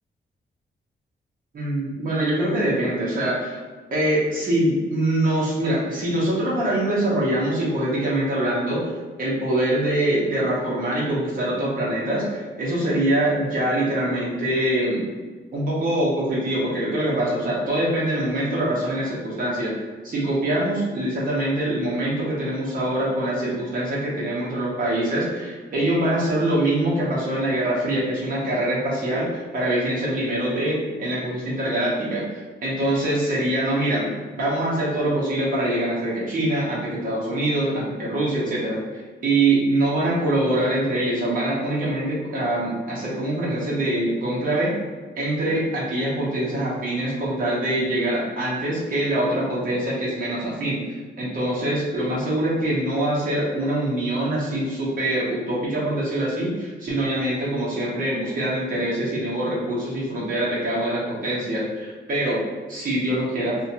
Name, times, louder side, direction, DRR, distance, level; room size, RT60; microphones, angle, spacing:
voice 1, 1.5-3.6 3.9-8.8 9.2-15.1 15.5-19.7 20.0-44.7 45.2-62.4 62.7-63.6, right 1 dB, 45° right, -6 dB, 0.8 m, -24 dB
2.6 x 2.2 x 2.7 m, 1.4 s
wide cardioid pair, 150°, 19 cm